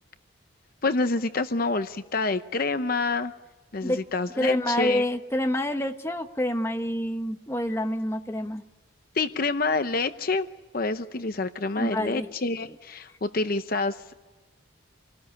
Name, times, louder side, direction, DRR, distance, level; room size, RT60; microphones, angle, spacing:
voice 1, 0.8-3.3 3.7-5.0 9.1-10.5 10.7-14.1, left 3 dB, 45° left, 9 dB, 0.8 m, -27 dB
voice 2, 4.4-8.6 11.8-12.3, left 1 dB, 15° left, 5 dB, 1.1 m, -27 dB
27.5 x 19.0 x 9.9 m, 1.2 s
head